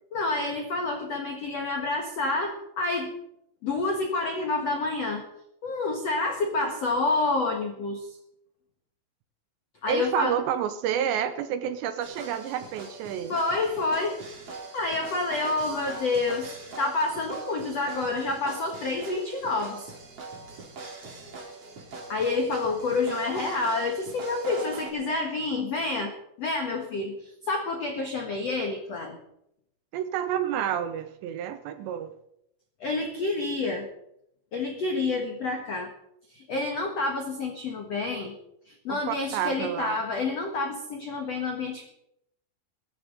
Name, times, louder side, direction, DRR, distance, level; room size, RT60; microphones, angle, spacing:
voice 1, 0.1-3.1 3.6-5.2 5.6-8.1 9.8-10.4 13.3-14.2 14.7-19.9 22.1-26.1 26.4-29.2 32.8-33.9 34.5-35.9 36.3-38.3 38.7-41.8, left 3 dB, 75° left, 3 dB, 1.5 m, -28 dB
voice 2, 9.9-13.4 29.9-32.1 38.9-40.0, right 9 dB, 80° right, 10 dB, 2.7 m, -29 dB
sound 1, 12.0-24.9, right 3 dB, 35° right, 3.0 m, -42 dB
22.5 x 12.0 x 3.9 m, 0.78 s
omnidirectional pair, 5.5 m